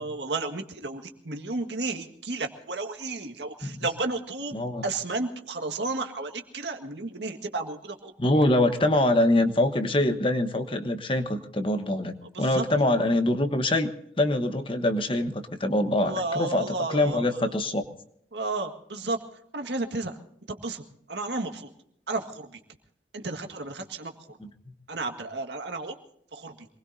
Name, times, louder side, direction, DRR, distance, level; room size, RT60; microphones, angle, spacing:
voice 1, 0.0-8.1 12.3-12.6 15.9-17.6 18.3-19.2 19.5-20.1 20.5-20.8 21.1-21.7 22.1-22.6 23.1-24.4 24.9-26.0 26.3-26.7, right 3 dB, 80° right, 5 dB, 1.8 m, -33 dB
voice 2, 4.5-4.8 8.2-13.9 14.2-17.8, left 1 dB, 30° left, 8 dB, 1.2 m, -24 dB
26.0 x 20.5 x 2.7 m, 0.69 s
head